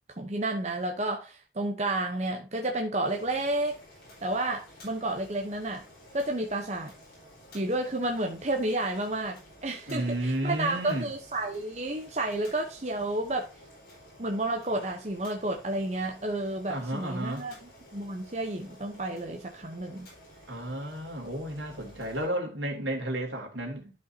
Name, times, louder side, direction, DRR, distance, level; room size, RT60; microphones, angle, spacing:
voice 1, 0.2-3.7 4.2-5.8 6.1-6.9 7.5-13.5 14.2-20.1, right 2 dB, 35° right, 0.9 m, -31 dB
Boiling, 3.0-22.3, left 1 dB, 55° left, 5.3 m, -53 dB
voice 2, 9.9-11.1 16.7-17.5 20.5-23.9, right 1 dB, 80° right, 2.8 m, -32 dB
12.0 x 5.4 x 2.8 m
head